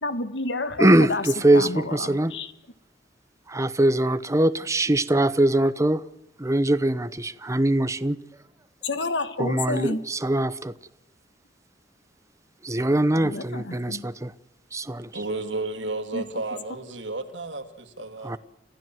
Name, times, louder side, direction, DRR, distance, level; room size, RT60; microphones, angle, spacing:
voice 1, 0.0-1.3 1.5-2.5 8.8-10.0 13.2-14.0 16.1-16.2, left 2 dB, 75° left, 1.8 m, -29 dB
voice 2, 0.8-2.3 3.5-6.0 6.4-8.2 9.4-10.7 12.6-14.3 14.7-15.1 18.2-18.4, right 1 dB, 15° right, 0.9 m, -22 dB
voice 3, 15.1-18.3, right 2 dB, 85° right, 2.8 m, -32 dB
29.5 x 15.5 x 7.8 m
head